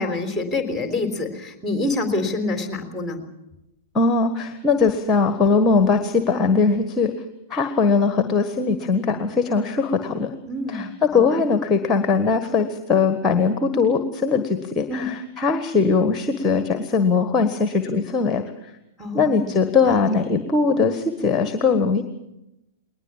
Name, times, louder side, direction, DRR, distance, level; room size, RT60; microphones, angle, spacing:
voice 1, 0.0-3.2 10.5-11.4 14.9-15.1 19.0-19.5 19.9-20.0, left 2 dB, 5° left, 5 dB, 3.9 m, -27 dB
voice 2, 3.9-7.1 7.5-10.3 10.7-10.9 11.1-18.4 19.1-22.0, left 4 dB, 20° left, 9 dB, 1.5 m, -20 dB
21.0 x 20.0 x 7.4 m, 0.91 s
figure-of-eight pair, 105°, 0 cm